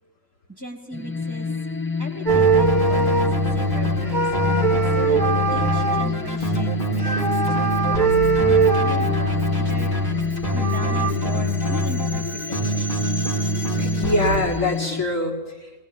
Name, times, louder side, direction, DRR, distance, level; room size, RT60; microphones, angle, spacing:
voice 1, 0.5-1.5 2.0-5.2 5.5-8.1 8.4-9.9 10.5-13.1, equal, 15° right, 2 dB, 3.8 m, -38 dB
sound 1, 0.9-15.0, left 4 dB, 15° left, 0.5 m, -29 dB
Keyboard (musical), 2.3-14.3, equal, 40° left, 5.0 m, -24 dB
sound 2, 2.3-3.6 4.0-6.1 7.0-9.5 10.2-10.3 10.4-11.1, right 4 dB, 35° right, 2.6 m, -22 dB
voice 2, 13.8-15.9, left 2 dB, 70° left, -2 dB, 4.9 m, -24 dB
22.5 x 20.0 x 8.7 m, 1.1 s
omnidirectional pair, 1.4 m